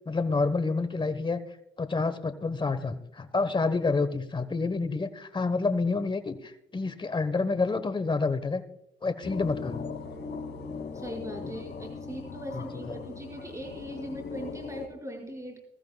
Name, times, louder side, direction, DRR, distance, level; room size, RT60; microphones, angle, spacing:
voice 1, 0.1-1.4 1.8-8.6 9.0-9.8 11.4-11.5 12.5-12.6, left 3 dB, 25° left, 11 dB, 1.1 m, -28 dB
sound 1, 9.2-14.9, left 5 dB, 60° left, 2.5 m, -39 dB
voice 2, 10.9-15.6, equal, 15° right, 1 dB, 5.4 m, -40 dB
21.5 x 14.5 x 2.3 m, 0.81 s
cardioid pair, 90°, 20 cm